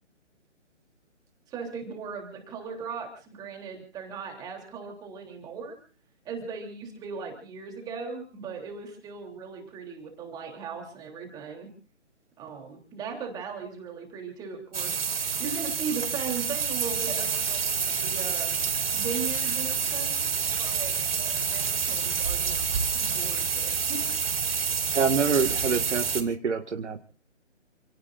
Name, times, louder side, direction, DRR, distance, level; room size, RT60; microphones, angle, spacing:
voice 1, 1.5-5.8 6.2-11.7 12.4-18.5 18.9-24.2, right 5 dB, 10° right, 2 dB, 3.3 m, -38 dB
sound 1, 14.7-26.2, right 6 dB, 50° right, 5.0 m, -28 dB
voice 2, 24.9-27.0, right 5 dB, 65° right, 5 dB, 1.9 m, -26 dB
29.5 x 17.5 x 2.6 m, 0.42 s
hypercardioid pair, 160°, 38 cm